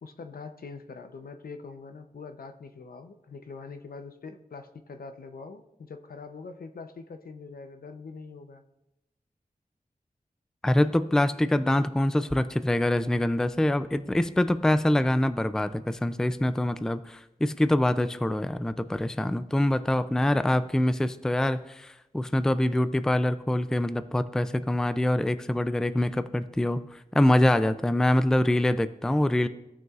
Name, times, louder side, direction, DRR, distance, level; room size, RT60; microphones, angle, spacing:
voice 1, 0.0-8.6, left 4 dB, 80° left, 8 dB, 0.6 m, -43 dB
voice 2, 10.6-29.5, left 1 dB, 5° left, 12 dB, 0.3 m, -25 dB
14.5 x 6.2 x 2.4 m, 0.90 s
wide cardioid pair, 80°, 15 cm